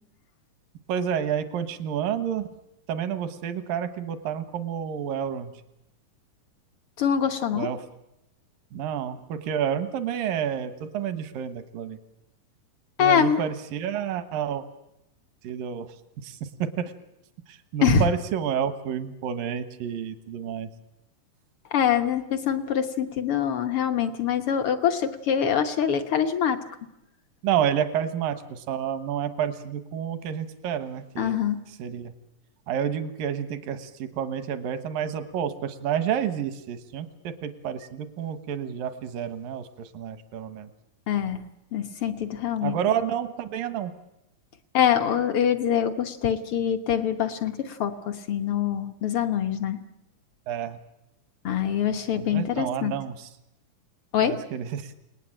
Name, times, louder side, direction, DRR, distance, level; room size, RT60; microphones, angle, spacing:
voice 1, 0.9-2.5 2.9-5.5 7.5-7.8 8.7-12.0 13.0-14.6 15.4-15.9 16.2-16.7 17.5-20.7 27.4-31.4 31.8-32.1 32.7-40.7 42.6-43.9 50.5-50.8 52.1-53.3 54.2-54.9, right 8 dB, 80° right, 9 dB, 2.9 m, -29 dB
voice 2, 7.0-7.7 13.0-13.4 17.8-18.0 21.7-26.6 31.2-31.6 41.1-41.4 41.7-42.8 44.7-49.8 51.4-52.9 54.1-54.4, left 8 dB, 60° left, 7 dB, 1.5 m, -24 dB
29.0 x 19.5 x 8.9 m, 0.93 s
omnidirectional pair, 3.9 m